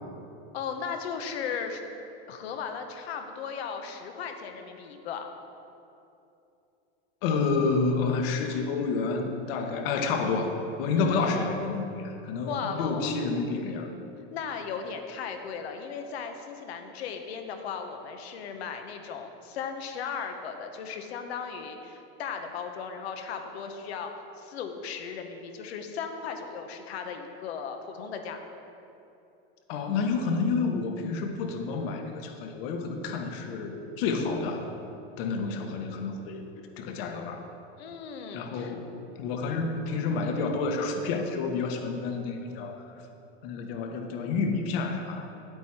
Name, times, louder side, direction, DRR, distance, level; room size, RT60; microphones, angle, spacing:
voice 1, 0.5-1.8 2.3-5.3 10.9-11.5 12.5-13.2 14.3-28.6 37.8-38.7, left 6 dB, 90° left, 5 dB, 1.1 m, -36 dB
voice 2, 7.2-10.5 10.8-13.9 29.7-34.7 35.2-37.5 38.3-42.9 43.4-45.3, left 4 dB, 65° left, 4 dB, 1.2 m, -29 dB
9.4 x 8.5 x 4.3 m, 2.8 s
supercardioid pair, 130°, 31 cm